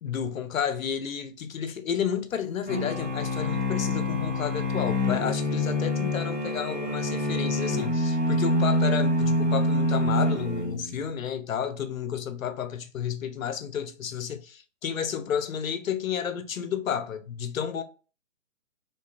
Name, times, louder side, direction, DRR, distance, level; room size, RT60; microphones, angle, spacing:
voice 1, 0.0-17.8, left 8 dB, 85° left, 0.6 m, -31 dB
sound 1, 2.7-11.0, left 1 dB, 5° right, 1.1 m, -26 dB
2.8 x 2.3 x 2.2 m
hypercardioid pair, 155°, 39 cm